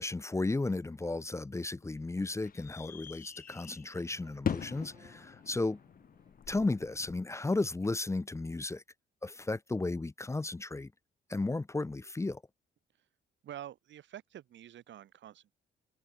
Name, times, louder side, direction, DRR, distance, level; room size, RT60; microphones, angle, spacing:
voice 1, 0.0-5.8 6.5-8.8 9.2-10.9 11.3-12.4, left 2 dB, 15° left, 0.7 m, -34 dB
sound 1, 1.1-7.1, left 8 dB, 45° left, 1.2 m, -42 dB
sound 2, 4.0-7.0, right 3 dB, 20° right, 3.8 m, -63 dB
voice 2, 13.4-15.5, right 11 dB, 70° right, 1.7 m, -47 dB
cardioid pair, 90°, 20 cm